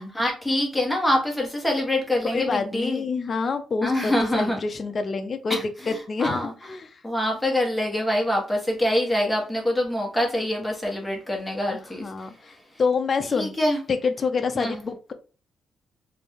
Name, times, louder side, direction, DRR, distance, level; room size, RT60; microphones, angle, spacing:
voice 1, 0.0-3.0 3.8-4.6 5.5-6.5 7.0-12.3 13.3-13.8 14.5-14.8, left 1 dB, 5° left, -1 dB, 1.3 m, -25 dB
voice 2, 2.3-7.0 11.7-12.5 12.8-13.6 13.9-15.1, left 4 dB, 35° left, 7 dB, 0.5 m, -27 dB
3.3 x 2.6 x 3.5 m, 0.36 s
cardioid pair, 135°, 0 cm